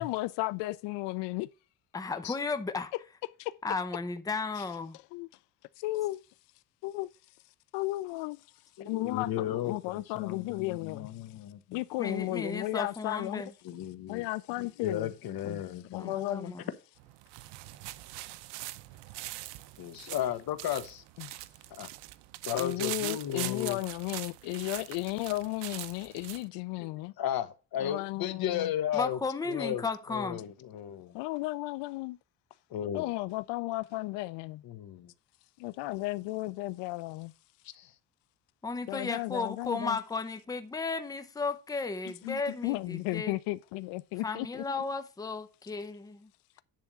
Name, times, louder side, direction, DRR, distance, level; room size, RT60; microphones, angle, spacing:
voice 1, 0.0-1.5 3.4-3.6 4.6-4.7 5.1-5.3 5.8-6.2 6.8-7.1 7.7-8.4 8.9-11.1 11.7-13.4 14.1-15.1 15.4-15.6 15.9-16.6 21.2-21.3 22.6-27.1 27.8-28.7 31.1-32.2 32.9-34.6 35.6-37.3 38.9-40.0 42.2-44.6, left 19 dB, 85° left, 0.5 m, -34 dB
voice 2, 1.9-2.9 3.6-5.0 12.0-13.5 16.0-16.6 28.9-30.4 38.6-43.4 44.2-46.3, left 4 dB, 10° left, 0.7 m, -34 dB
voice 3, 8.8-11.8 13.6-14.2 14.8-16.1 19.8-21.0 21.8-21.9 22.4-23.8 26.8-26.9 27.2-29.2 29.5-29.8 30.1-31.2 32.7-33.1 34.6-35.1 37.7-37.9, left 10 dB, 60° left, 1.3 m, -34 dB
sound 1, 17.0-26.5, right 17 dB, 85° right, 0.7 m, -42 dB
10.5 x 3.5 x 6.8 m
cardioid pair, 125°, 41 cm